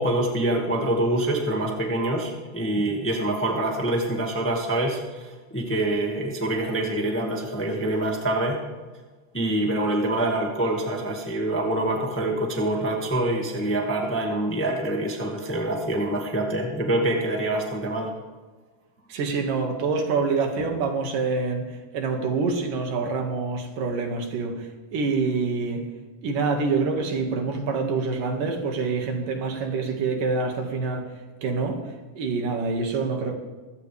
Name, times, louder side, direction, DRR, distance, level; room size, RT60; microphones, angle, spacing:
voice 1, 0.0-8.6 9.3-18.1, right 1 dB, 5° left, 1.1 m, -25 dB
voice 2, 19.1-21.7 21.9-25.8 26.2-31.1 31.4-31.8 32.2-33.3, right 4 dB, 80° right, 3.6 m, -26 dB
24.0 x 15.5 x 3.5 m
omnidirectional pair, 3.7 m